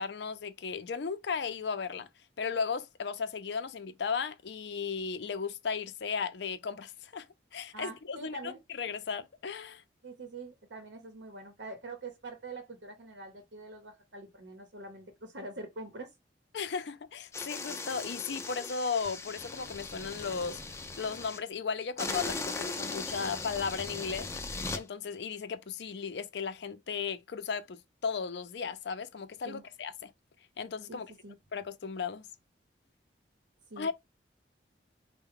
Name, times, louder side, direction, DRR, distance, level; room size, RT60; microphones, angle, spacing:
voice 1, 0.0-2.1 2.4-7.3 7.5-9.8 16.5-24.3 24.7-30.1 30.6-31.1 31.5-32.3 33.8-33.9, left 5 dB, 70° left, 0.5 m, -36 dB
voice 2, 7.7-8.6 10.0-16.1 29.4-29.6 30.9-31.4 33.7-33.9, right 2 dB, 85° right, 0.8 m, -44 dB
sound 1, 17.3-21.4 22.0-24.8, left 3 dB, 15° left, 0.4 m, -38 dB
4.5 x 2.1 x 3.6 m
head